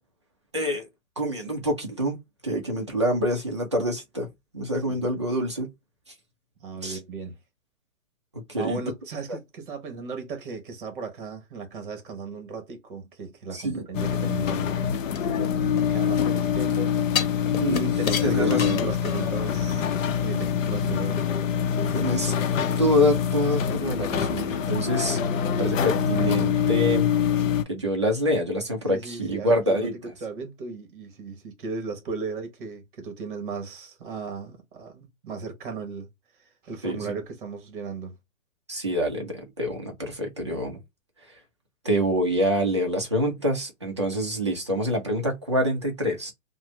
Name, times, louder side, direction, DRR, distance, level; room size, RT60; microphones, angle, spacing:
voice 1, 0.5-0.9 1.2-2.2 2.4-4.3 4.5-5.7 6.8-7.0 8.3-8.8 13.5-14.2 17.5-17.9 18.2-18.7 21.9-22.3 22.8-25.2 25.5-27.1 27.7-29.9 36.8-37.2 38.7-40.8 41.8-46.3, equal, 25° right, 0.4 m, -26 dB
voice 2, 6.6-7.4 8.6-14.9 15.3-17.0 17.7-19.9 20.2-21.2 28.9-29.9 30.2-36.1 36.4-38.1, right 4 dB, 40° right, 1.0 m, -36 dB
sound 1, 13.9-27.6, left 8 dB, 70° left, 0.6 m, -25 dB
sound 2, 15.1-16.3 17.2-19.5 19.9-20.0, left 7 dB, 90° left, 0.9 m, -31 dB
3.1 x 2.0 x 3.0 m
hypercardioid pair, 155°, 41 cm